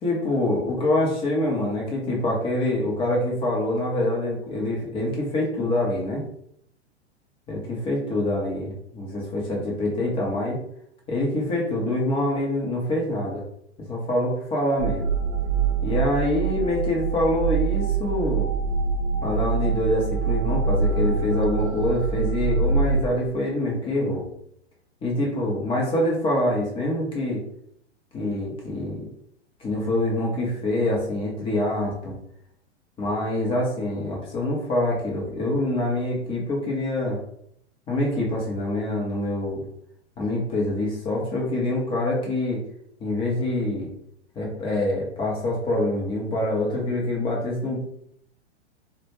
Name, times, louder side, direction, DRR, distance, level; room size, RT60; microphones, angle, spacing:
voice 1, 0.0-6.2 7.5-10.6 11.1-13.4 13.9-15.1 15.8-18.5 19.2-24.3 25.0-27.4 28.1-29.1 29.6-32.1 33.0-37.2 37.9-39.6 40.2-42.6 43.0-43.9 44.4-47.9, left 1 dB, 15° left, -2 dB, 0.5 m, -25 dB
sound 1, 14.8-23.0, right 5 dB, 65° right, 0.5 m, -25 dB
2.1 x 2.0 x 2.9 m, 0.72 s
hypercardioid pair, 110°, 34 cm